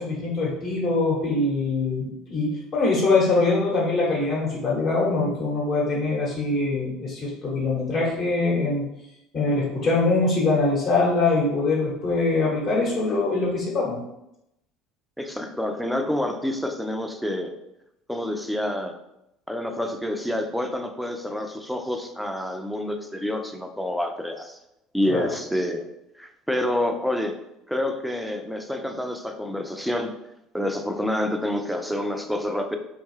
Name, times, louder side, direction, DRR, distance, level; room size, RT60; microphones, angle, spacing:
voice 1, 0.0-8.9 9.3-14.0 25.0-25.3, left 3 dB, 45° left, -4 dB, 1.0 m, -23 dB
voice 2, 15.2-17.5 18.1-19.0 19.5-24.6 24.9-25.9 26.2-27.4 27.7-30.1 30.5-32.8, left 1 dB, ahead, 5 dB, 0.4 m, -28 dB
2.8 x 2.2 x 3.1 m, 0.84 s
figure-of-eight pair, 60°, 0 cm